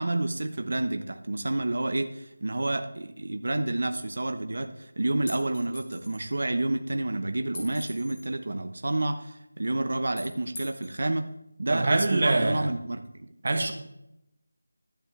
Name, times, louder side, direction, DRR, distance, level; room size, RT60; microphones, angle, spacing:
voice 1, 0.0-11.3 11.6-13.3, right 2 dB, 60° right, 7 dB, 0.9 m, -29 dB
sound 1, 5.3-6.3 7.5-8.3 10.2-11.0, left 1 dB, 20° left, 2.2 m, -42 dB
voice 2, 11.7-12.7 13.4-13.7, right 2 dB, 40° right, 6 dB, 1.3 m, -24 dB
12.5 x 10.0 x 3.3 m, 0.83 s
figure-of-eight pair, 175°, 0 cm